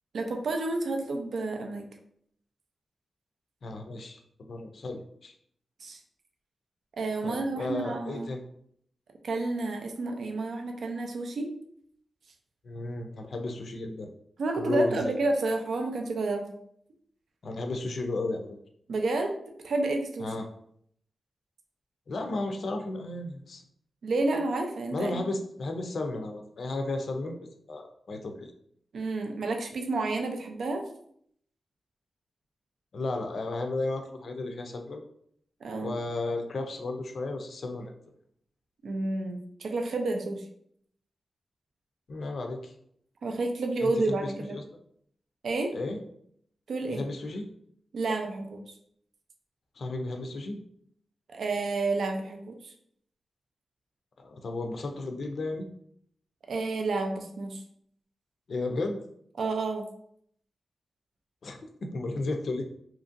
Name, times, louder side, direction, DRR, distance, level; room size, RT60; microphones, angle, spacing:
voice 1, 0.1-1.9 5.8-6.0 7.0-8.3 9.2-11.5 14.4-16.5 18.9-19.3 19.6-20.3 24.0-25.2 28.9-30.8 35.6-36.0 38.8-40.4 43.2-44.6 45.4-45.7 46.7-47.0 47.9-48.6 51.3-52.7 56.5-57.6 59.4-59.9, right 2 dB, 75° right, 3 dB, 0.4 m, -30 dB
voice 2, 3.6-4.2 4.5-5.3 7.2-8.4 12.6-14.1 14.6-15.1 17.4-18.6 20.2-20.4 22.1-23.6 24.9-27.4 27.7-28.5 32.9-35.0 35.8-37.9 42.1-42.7 43.8-44.6 45.7-46.0 46.9-47.5 49.8-50.6 54.2-55.7 58.5-59.0 61.4-62.7, left 2 dB, 65° left, 4 dB, 0.4 m, -33 dB
2.9 x 2.5 x 2.5 m, 0.68 s
wide cardioid pair, 110°, 0 cm